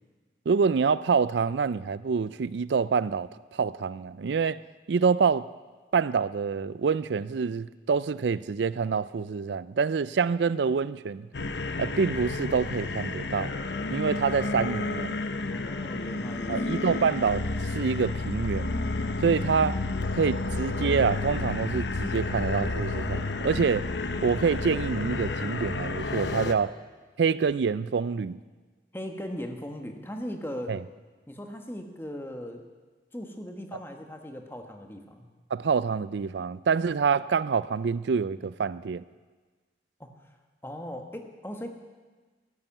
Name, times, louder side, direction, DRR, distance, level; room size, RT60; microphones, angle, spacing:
voice 1, 0.5-4.6 4.9-5.5 5.9-11.3 11.8-13.5 13.9-15.2 16.5-17.4 17.7-18.8 19.2-19.8 20.2-23.8 24.2-26.7 27.2-28.4 30.7-30.8 35.5-39.0, right 5 dB, 85° right, 0.4 m, -26 dB
sound 1, 11.3-26.5, left 3 dB, 85° left, 0.9 m, -31 dB
voice 2, 15.5-16.9 28.9-30.8 31.3-32.6 33.1-35.3 40.0-40.1 40.6-41.7, equal, 15° left, 1.4 m, -38 dB
13.5 x 11.5 x 9.0 m
head